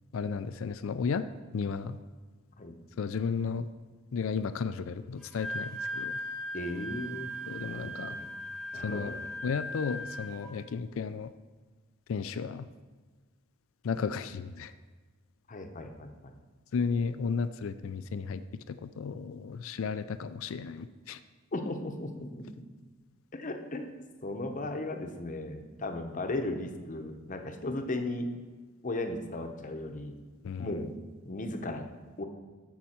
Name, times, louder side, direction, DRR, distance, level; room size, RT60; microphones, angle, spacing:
voice 1, 0.1-1.2 1.5-2.0 3.0-3.7 4.1-6.2 7.5-8.2 8.8-9.1 9.4-11.3 12.1-12.7 13.8-14.7 16.7-18.4 18.7-21.2 30.4-30.7, left 5 dB, 65° left, 12 dB, 0.4 m, -33 dB
Wind instrument woodwind instrument, 5.2-10.5, equal, 5° left, 0.9 m, -38 dB
voice 2, 6.5-7.3 7.7-8.3 8.7-9.2 15.5-16.3 21.5-22.6 23.3-24.0 24.2-28.3 28.8-30.2 30.6-30.9 31.2-31.9 32.2-32.3, left 2 dB, 35° left, 5 dB, 0.8 m, -36 dB
13.5 x 5.6 x 4.4 m, 1.4 s
head